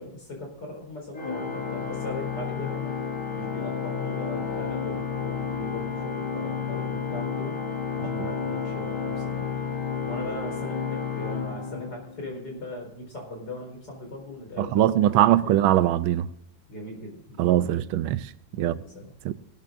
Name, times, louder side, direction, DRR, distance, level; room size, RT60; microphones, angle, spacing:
voice 1, 0.0-3.0 3.3-7.6 8.0-9.4 10.1-15.6 16.7-17.8 18.5-19.1, left 1 dB, 60° left, 5.0 m, -39 dB
Organ, 1.1-12.3, left 6 dB, 80° left, 2.8 m, -31 dB
voice 2, 14.6-16.3 17.4-18.8 19.2-19.3, right 13 dB, 85° right, 1.4 m, -22 dB
18.0 x 12.5 x 2.6 m
omnidirectional pair, 2.2 m